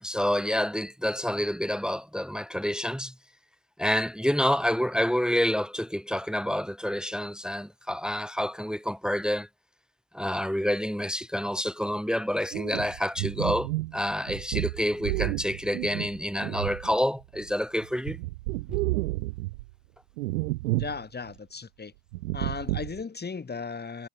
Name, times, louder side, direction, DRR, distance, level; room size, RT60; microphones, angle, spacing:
voice 1, 0.0-3.1 3.8-9.5 10.1-18.2, equal, ahead, 1.3 m, -28 dB
sound 1, 12.5-17.5 17.8-19.7 20.2-21.0 21.3-21.4 22.1-23.0, right 21 dB, 65° right, 1.6 m, -31 dB
voice 2, 20.8-21.9 22.3-24.1, left 5 dB, 20° left, 2.5 m, -36 dB
figure-of-eight pair, 60°, 48 cm